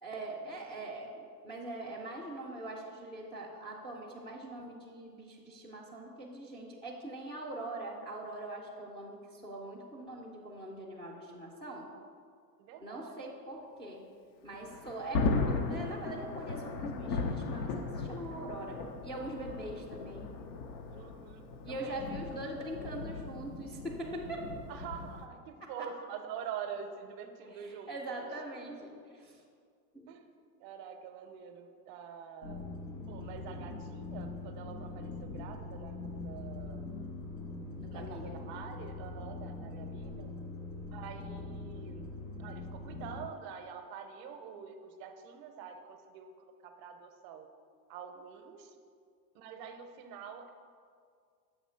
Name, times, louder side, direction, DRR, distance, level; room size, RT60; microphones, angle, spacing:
voice 1, 0.0-11.9 12.8-14.0 14.4-20.3 21.6-24.4 25.8-25.9 27.4-29.4 29.9-30.2 37.8-38.4, right 1 dB, 10° left, -3 dB, 0.4 m, -42 dB
voice 2, 12.6-13.2 20.9-22.0 22.3-22.9 24.7-28.3 30.1-30.3 30.6-32.6 33.1-36.9 37.9-40.3 40.9-42.0 42.4-47.5 47.9-48.7 49.3-50.5, right 7 dB, 45° right, 6 dB, 0.6 m, -46 dB
Thunder, 14.5-25.3, left 3 dB, 85° left, 0.8 m, -37 dB
sound 1, 32.4-43.3, left 3 dB, 70° left, 1.7 m, -42 dB
7.1 x 3.0 x 5.5 m, 2.2 s
supercardioid pair, 125°, 49 cm